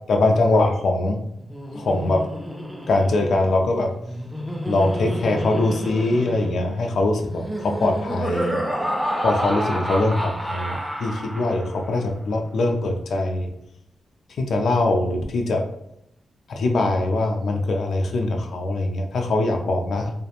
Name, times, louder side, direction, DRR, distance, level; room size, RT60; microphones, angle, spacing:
voice 1, 0.1-1.2 1.7-2.3 2.9-3.9 4.7-8.6 9.2-13.5 14.4-15.6 16.5-20.1, left 2 dB, 70° left, 3 dB, 0.4 m, -22 dB
Laughter, 1.4-11.9, equal, 5° right, 0.3 m, -30 dB
2.4 x 2.1 x 2.8 m, 0.79 s
wide cardioid pair, 130°, 0 cm